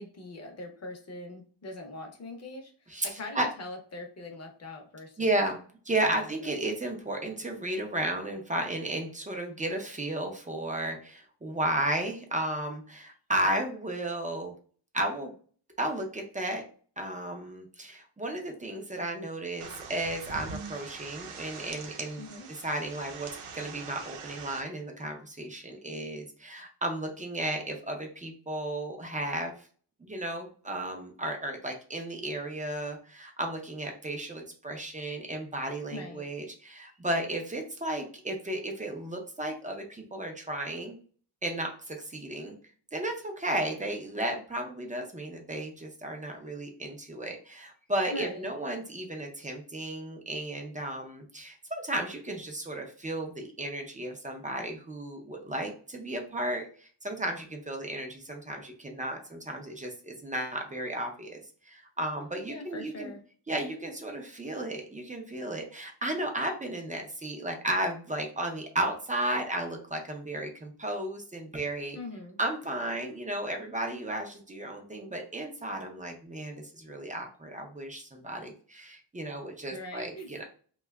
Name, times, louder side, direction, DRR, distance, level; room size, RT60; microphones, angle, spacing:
voice 1, 0.0-5.4 6.1-6.6 22.2-22.5 35.9-36.3 48.1-48.5 62.5-63.2 71.9-72.4 79.7-80.4, left 2 dB, 35° left, 3 dB, 0.6 m, -42 dB
voice 2, 2.9-3.5 5.2-14.5 14.9-15.3 15.8-16.6 17.0-22.2 22.5-29.5 30.0-41.0 41.4-42.6 42.9-61.4 61.7-63.1 63.5-72.0 72.4-80.5, right 1 dB, 20° right, 2 dB, 0.4 m, -34 dB
sound 1, 19.6-24.6, right 5 dB, 90° right, 0.7 m, -43 dB
2.7 x 2.2 x 3.3 m, 0.43 s
wide cardioid pair, 170°, 49 cm